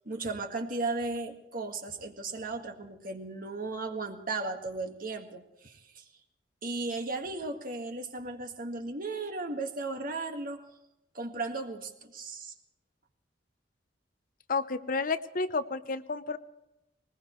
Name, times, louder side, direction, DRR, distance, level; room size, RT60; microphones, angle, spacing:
voice 1, 0.1-6.0 6.6-10.6 11.1-12.5, right 3 dB, 50° right, 5 dB, 1.8 m, -36 dB
voice 2, 14.5-16.4, left 4 dB, 50° left, 12 dB, 0.8 m, -31 dB
20.5 x 20.0 x 3.2 m, 0.91 s
head